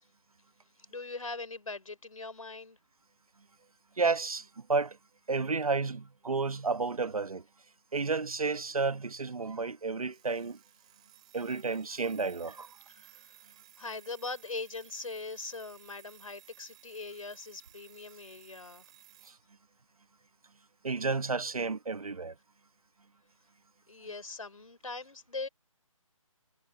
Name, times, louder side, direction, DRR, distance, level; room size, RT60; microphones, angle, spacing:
voice 1, 0.9-2.8 12.9-13.4 13.8-18.9 23.9-25.5, left 3 dB, 70° left, 4.0 m, -41 dB
voice 2, 4.0-5.0 5.3-7.4 7.9-10.6 11.3-12.7 20.8-22.3, right 4 dB, 85° right, 1.2 m, -31 dB
Alarm, 10.1-19.4, right 13 dB, 10° right, 2.8 m, -58 dB
hypercardioid pair, 180°, 18 cm